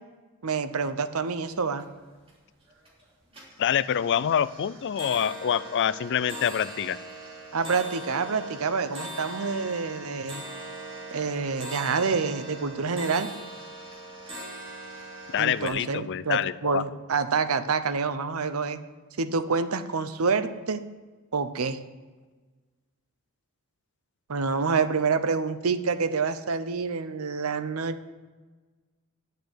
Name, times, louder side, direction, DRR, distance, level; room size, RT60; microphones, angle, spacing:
voice 1, 0.4-1.8 7.5-10.4 11.1-13.3 15.4-18.8 19.2-20.8 21.3-21.8 24.3-28.1, right 5 dB, 75° right, 11 dB, 0.7 m, -27 dB
sound 1, 1.3-1.4 1.7-2.3 2.7-3.0 3.3-15.7, right 1 dB, 25° right, 3.6 m, -41 dB
voice 2, 3.6-7.0 15.3-16.8, left 8 dB, 55° left, 17 dB, 0.4 m, -26 dB
10.5 x 6.7 x 7.9 m, 1.3 s
head